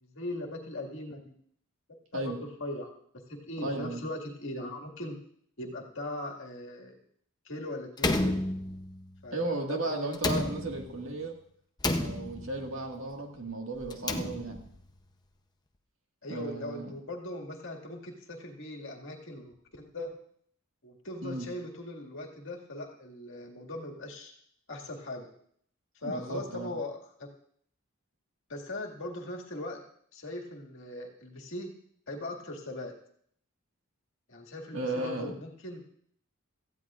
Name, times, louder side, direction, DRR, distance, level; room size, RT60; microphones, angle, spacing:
voice 1, 0.0-1.3 2.1-2.3 2.6-2.9 3.3-5.2 5.6-7.0 7.5-8.4 9.2-10.3 16.2-20.1 20.8-24.3 24.7-25.3 26.0-27.3 28.5-29.8 30.1-31.7 32.1-32.9 34.3-35.8, left 1 dB, 60° left, 0 dB, 2.0 m, -39 dB
voice 2, 3.6-4.0 9.3-11.4 11.9-14.6 16.3-16.9 21.2-21.5 26.0-26.7 34.7-35.3, right 2 dB, 65° right, 2 dB, 1.8 m, -35 dB
Slam, 8.0-9.1 10.1-11.1 11.8-12.7 13.8-14.8, left 2 dB, 20° left, 0.7 m, -31 dB
17.5 x 14.0 x 2.5 m, 0.65 s
head